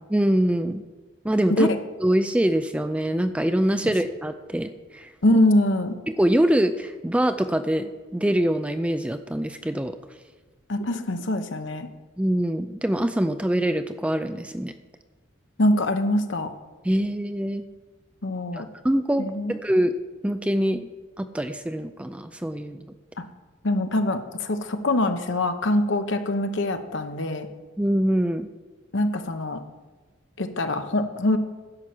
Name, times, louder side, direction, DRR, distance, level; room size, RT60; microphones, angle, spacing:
voice 1, 0.1-0.8 1.2-1.7 2.0-5.1 6.1-10.0 12.2-14.7 16.8-17.7 18.5-19.9 20.2-20.9 21.2-22.8 27.8-28.5, right 1 dB, 5° right, 9 dB, 0.3 m, -24 dB
voice 2, 5.2-5.9 10.7-11.9 15.6-16.5 18.2-18.7 19.2-19.5 23.6-27.5 28.9-29.6 30.4-31.4, left 1 dB, 65° left, 8 dB, 0.9 m, -23 dB
10.5 x 5.7 x 7.6 m, 1.3 s
head